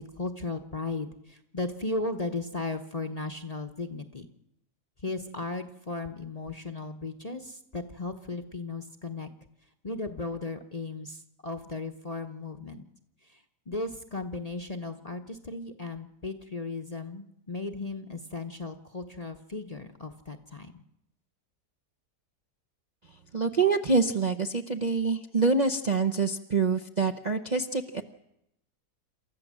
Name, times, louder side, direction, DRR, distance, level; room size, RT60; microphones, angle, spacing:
voice 1, 0.0-4.3 5.0-9.3 9.8-12.8 13.7-20.8, left 3 dB, 30° left, 6 dB, 0.9 m, -36 dB
voice 2, 23.3-28.0, right 4 dB, 40° right, 4 dB, 0.7 m, -26 dB
28.0 x 14.0 x 7.6 m, 0.83 s
omnidirectional pair, 1.8 m